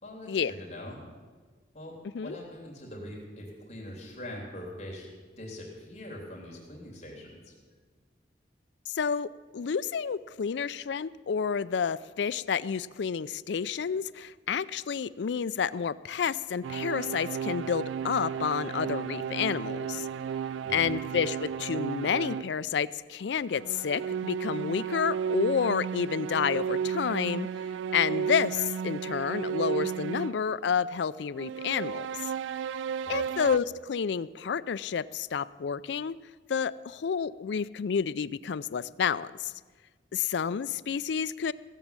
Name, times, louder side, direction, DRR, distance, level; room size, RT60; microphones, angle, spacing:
voice 1, 0.0-1.0 1.7-1.9 2.2-5.1 5.4-7.5 20.6-20.9 33.0-33.5, left 1 dB, 35° left, -2 dB, 3.2 m, -43 dB
voice 2, 8.9-20.1 20.7-27.5 27.9-32.3 33.1-36.2 36.5-39.5 40.1-41.5, left 6 dB, 70° left, 16 dB, 0.4 m, -30 dB
sound 1, 16.6-22.5 23.5-30.5 31.4-33.6, right 7 dB, 85° right, 0.3 m, -33 dB
16.5 x 7.3 x 8.9 m, 1.5 s
head